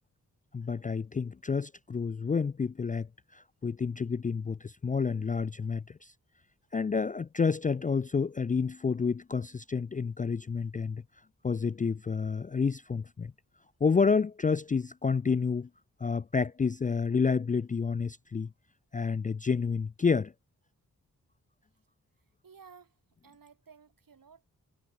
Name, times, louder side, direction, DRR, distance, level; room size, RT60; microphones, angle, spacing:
voice 1, 0.5-3.1 3.3-6.1 6.7-11.0 11.4-13.3 13.8-15.7 16.0-18.5 18.9-20.3, left 5 dB, 25° left, 0.4 m, -29 dB
voice 2, 22.4-24.5, right 6 dB, 65° right, 6.2 m, -56 dB
cardioid pair, 45°, 36 cm